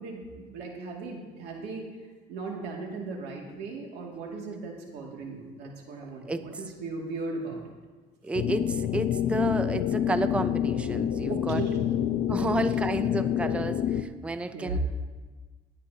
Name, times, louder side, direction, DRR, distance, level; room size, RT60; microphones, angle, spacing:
voice 1, 0.0-1.9 2.3-7.6 11.3-11.8 12.3-12.4 14.5-14.8, right 3 dB, 85° right, -1 dB, 2.3 m, -37 dB
voice 2, 8.2-11.6 12.3-14.8, right 2 dB, 5° right, 11 dB, 0.4 m, -31 dB
sound 1, 8.3-14.0, left 10 dB, 55° left, 0.6 m, -27 dB
19.5 x 9.9 x 2.8 m, 1.3 s
cardioid pair, 110°, 17 cm